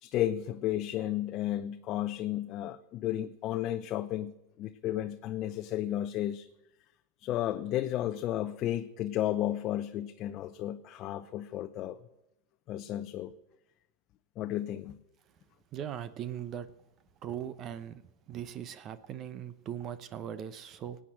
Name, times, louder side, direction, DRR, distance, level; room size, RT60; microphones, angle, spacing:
voice 1, 0.0-6.5 7.2-12.0 12.7-13.3 14.4-15.0, left 12 dB, 45° left, 7 dB, 0.7 m, -33 dB
voice 2, 15.7-16.7 17.2-18.0 18.3-21.0, right 10 dB, 40° right, 14 dB, 0.9 m, -39 dB
18.0 x 8.9 x 6.5 m, 0.92 s
hypercardioid pair, 110°, 0 cm